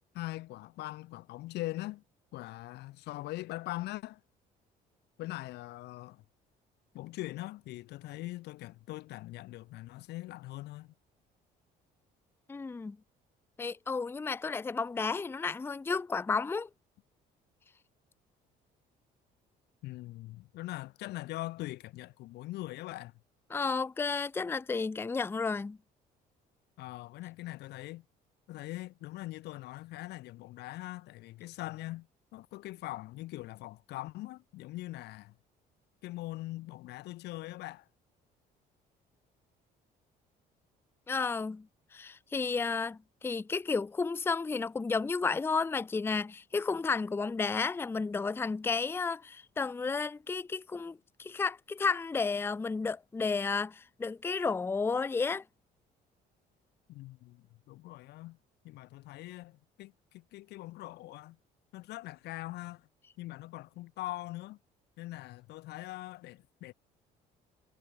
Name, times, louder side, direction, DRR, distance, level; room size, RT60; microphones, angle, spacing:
voice 1, 0.1-2.0 2.3-4.2 5.2-6.2 6.9-10.9 19.8-23.1 26.8-28.0 28.5-32.1 32.3-35.3 36.0-37.9 56.9-58.4 58.6-61.4 61.7-62.9 63.2-64.6 65.0-66.7, left 18 dB, 80° left, 1.2 m, -42 dB
voice 2, 12.5-13.0 13.6-16.7 23.5-25.8 41.1-41.7 41.9-55.4, left 4 dB, 15° left, 0.5 m, -32 dB
cardioid pair, 110°, 17 cm